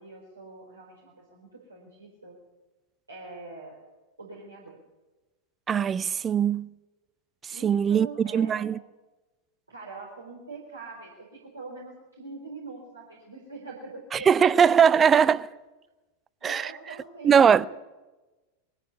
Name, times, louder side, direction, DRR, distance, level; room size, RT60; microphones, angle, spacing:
voice 1, 0.0-2.3 3.1-3.8 4.2-4.8 7.5-8.7 9.7-15.2 16.4-17.7, right 3 dB, 80° right, 4.4 m, -43 dB
voice 2, 5.7-6.7 7.4-8.8 14.1-15.4 16.4-16.7 17.2-17.7, right 7 dB, 20° right, 0.6 m, -21 dB
21.5 x 13.5 x 9.6 m
figure-of-eight pair, 90°, 0 cm